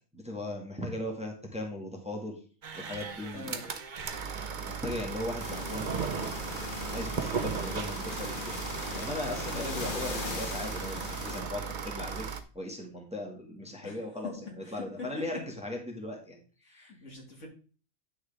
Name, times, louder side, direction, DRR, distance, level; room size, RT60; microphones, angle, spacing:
voice 1, 0.1-2.4 2.7-3.7 4.3-6.1 6.5-8.6 8.9-12.3 12.5-17.0, left 1 dB, 5° right, 0 dB, 1.7 m, -38 dB
sound 1, 2.6-12.4, right 6 dB, 40° right, 0.8 m, -36 dB
voice 2, 3.3-3.7 9.5-9.9 13.8-14.0 14.4-15.2 16.6-17.5, left 2 dB, 60° left, 0 dB, 2.7 m, -43 dB
sound 2, 5.4-11.4, left 4 dB, 40° left, 1.3 m, -39 dB
10.0 x 6.4 x 3.5 m, 0.38 s
omnidirectional pair, 1.4 m